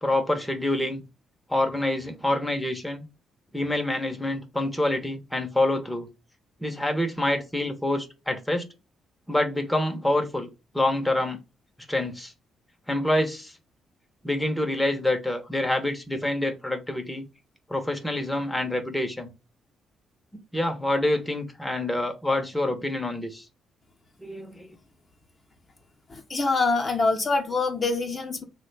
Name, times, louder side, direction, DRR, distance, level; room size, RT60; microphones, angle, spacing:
voice 1, 0.0-1.0 1.5-3.1 3.5-6.1 6.6-8.7 9.3-10.5 10.7-11.4 11.9-12.3 12.9-13.5 14.2-17.3 17.7-19.3 20.3-23.5 24.2-24.7, left 1 dB, 5° left, 0.7 m, -26 dB
voice 2, 26.1-28.4, left 3 dB, 35° left, 0.7 m, -25 dB
3.2 x 2.2 x 3.2 m
cardioid pair, 90°, 0 cm